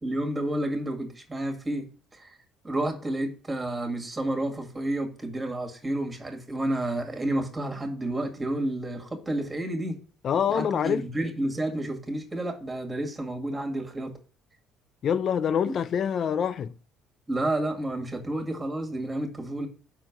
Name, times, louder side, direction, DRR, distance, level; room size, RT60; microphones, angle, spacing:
voice 1, 0.0-2.3 2.6-10.0 10.5-14.1 15.7-15.8 17.3-19.7, right 1 dB, 20° right, 2.1 m, -30 dB
voice 2, 10.2-11.0 15.0-16.7, left 8 dB, 50° left, 0.3 m, -25 dB
6.0 x 4.5 x 6.0 m
cardioid pair, 95°, 0 cm